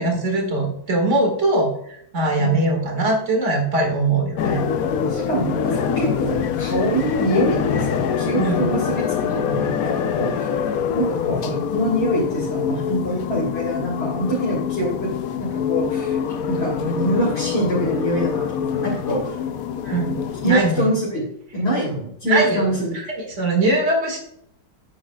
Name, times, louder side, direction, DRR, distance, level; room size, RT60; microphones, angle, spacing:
voice 1, 0.0-1.7 2.1-4.6 8.4-8.7 19.8-20.2 20.4-20.8 22.2-22.7 23.1-24.2, right 2 dB, 40° right, 2 dB, 2.3 m, -21 dB
sound 1, 4.4-20.7, left 7 dB, 65° left, 1.0 m, -24 dB
voice 2, 5.1-10.5 10.9-15.1 15.4-16.2 16.5-19.4 20.4-21.3 21.5-22.9, right 1 dB, 35° left, -5 dB, 2.5 m, -24 dB
8.9 x 8.5 x 2.4 m, 0.71 s
omnidirectional pair, 2.1 m